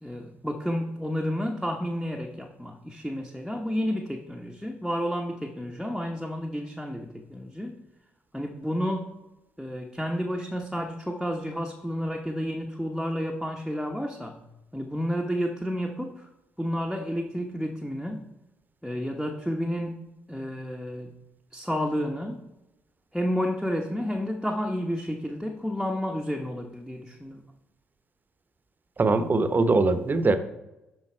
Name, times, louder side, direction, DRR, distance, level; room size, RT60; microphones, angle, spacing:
voice 1, 0.0-7.8 8.3-9.2 9.6-14.4 14.7-16.3 16.6-18.3 18.8-21.1 21.5-22.4 23.1-27.4, equal, ahead, 2 dB, 1.0 m, -31 dB
voice 2, 29.0-30.4, right 3 dB, 35° right, 10 dB, 0.9 m, -22 dB
11.5 x 4.0 x 4.4 m, 0.97 s
hypercardioid pair, 45°, 6 cm